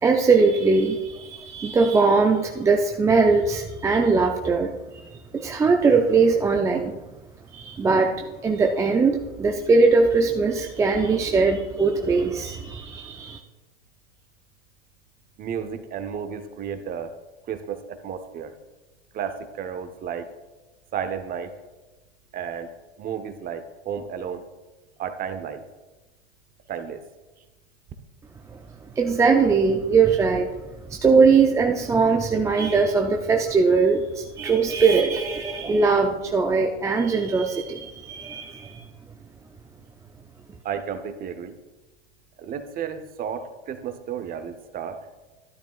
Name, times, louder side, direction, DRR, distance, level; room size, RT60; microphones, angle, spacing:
voice 1, 0.0-7.0 7.5-13.4 28.5-28.6 29.0-30.5 30.9-38.8, right 4 dB, 10° right, 2 dB, 0.4 m, -21 dB
voice 2, 15.4-17.1 17.5-18.5 19.1-20.3 20.9-21.5 22.3-24.4 25.0-25.6 26.7-27.0 40.6-41.6 42.4-45.0, right 7 dB, 25° right, 9 dB, 0.9 m, -32 dB
12.5 x 10.5 x 2.4 m, 1.1 s
hypercardioid pair, 105°, 34 cm